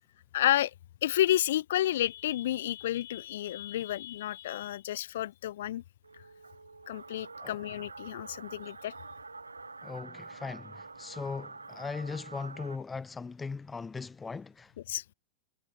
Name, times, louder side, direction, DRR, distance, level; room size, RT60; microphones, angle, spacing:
voice 1, 0.3-0.7 1.0-5.8 6.9-8.9 14.9-15.0, left 13 dB, 60° left, 2.1 m, -30 dB
sound 1, 6.0-12.8, right 3 dB, 80° right, 2.9 m, -47 dB
voice 2, 9.8-14.7, left 4 dB, 15° left, 2.2 m, -39 dB
figure-of-eight pair, 90°, 0 cm